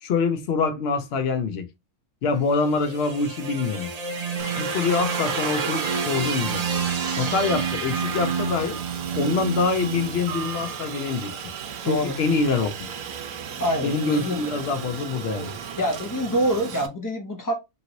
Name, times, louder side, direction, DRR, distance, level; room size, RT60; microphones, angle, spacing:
voice 1, 0.0-1.7 2.2-3.9 4.6-6.6 7.1-8.8 9.2-11.4 11.8-12.9 13.8-15.6, left 4 dB, 60° left, 0.7 m, -25 dB
sound 1, 2.4-10.7, right 5 dB, 50° right, 0.4 m, -29 dB
Aircraft, 4.4-16.9, right 7 dB, 75° right, 1.0 m, -34 dB
voice 2, 13.6-14.4 15.8-17.5, equal, 30° left, 0.4 m, -25 dB
2.9 x 2.9 x 2.6 m
omnidirectional pair, 1.4 m